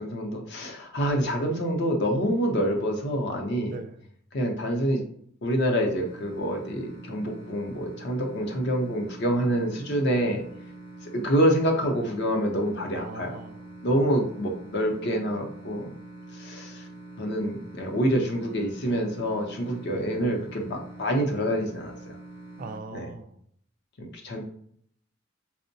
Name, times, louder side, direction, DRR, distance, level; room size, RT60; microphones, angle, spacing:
voice 1, 0.0-3.7 4.3-5.0 5.4-10.4 11.1-13.4 13.8-15.9 16.3-16.8 17.2-21.9 22.9-23.1 24.0-24.4, equal, 60° left, 2 dB, 0.6 m, -26 dB
voice 2, 3.7-4.0 12.9-14.0 19.9-20.2 22.6-23.4, right 3 dB, 45° right, 8 dB, 0.3 m, -40 dB
sound 1, 5.9-22.8, right 2 dB, 25° left, 0.7 m, -45 dB
4.3 x 2.1 x 2.6 m, 0.64 s
head